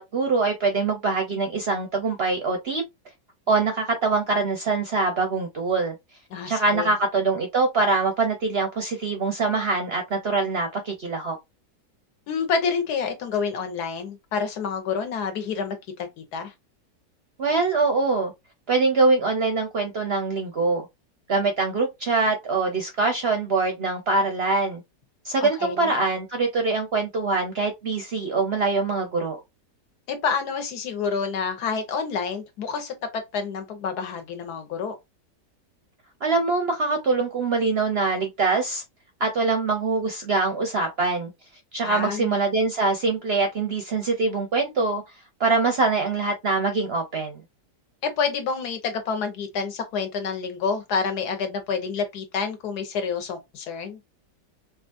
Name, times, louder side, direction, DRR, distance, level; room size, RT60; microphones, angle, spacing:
voice 1, 0.0-2.8 3.5-6.0 6.5-11.4 17.4-18.3 18.7-20.8 21.3-24.8 25.2-29.4 36.2-38.8 39.2-41.3 41.7-45.0 45.4-47.4, right 3 dB, 60° right, 0.6 m, -24 dB
voice 2, 6.3-6.9 12.3-16.5 25.4-25.9 30.1-35.0 41.8-42.3 48.0-54.0, left 5 dB, 65° left, 1.4 m, -28 dB
4.8 x 2.5 x 2.5 m
omnidirectional pair, 1.9 m